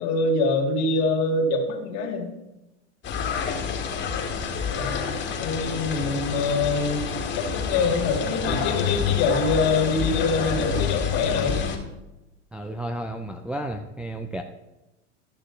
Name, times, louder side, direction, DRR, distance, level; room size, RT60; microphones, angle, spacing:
voice 1, 0.0-2.3 4.7-5.0 5.4-7.1 7.3-11.7, left 3 dB, 50° left, 3 dB, 2.0 m, -24 dB
sound 1, 3.0-11.8, left 6 dB, 30° left, 1.8 m, -28 dB
voice 2, 12.5-14.4, right 1 dB, 5° right, 3 dB, 0.4 m, -32 dB
12.5 x 6.4 x 3.8 m, 0.98 s
hypercardioid pair, 105°, 35 cm